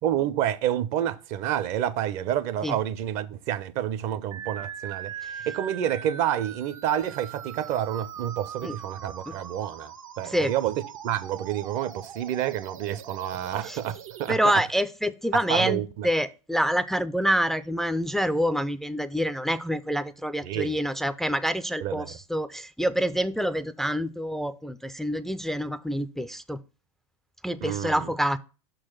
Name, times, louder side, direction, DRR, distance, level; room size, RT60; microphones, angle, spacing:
voice 1, 0.0-14.5 15.3-16.1 20.4-20.7 21.8-22.1 27.6-28.1, right 11 dB, 45° right, 0.6 m, -29 dB
sound 1, 4.3-14.3, right 8 dB, 75° right, 0.8 m, -41 dB
voice 2, 14.3-26.6 27.4-28.4, equal, ahead, 0.4 m, -27 dB
6.2 x 3.9 x 6.1 m
figure-of-eight pair, 90°, 17 cm